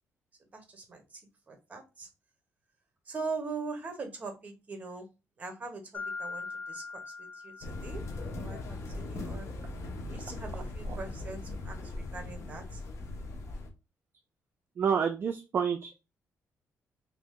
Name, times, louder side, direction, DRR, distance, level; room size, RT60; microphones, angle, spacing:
voice 1, 0.5-1.2 1.5-2.1 3.1-5.1 5.4-8.0 8.4-9.5 10.1-12.8, right 4 dB, 25° right, 5 dB, 1.0 m, -41 dB
Mallet percussion, 5.9-8.5, left 4 dB, 25° left, 0.7 m, -41 dB
sound 1, 7.6-13.7, left 2 dB, 60° left, 0.8 m, -39 dB
voice 2, 14.8-16.0, right 7 dB, 40° right, 7 dB, 0.4 m, -29 dB
3.0 x 2.7 x 3.6 m, 0.28 s
cardioid pair, 135°, 6 cm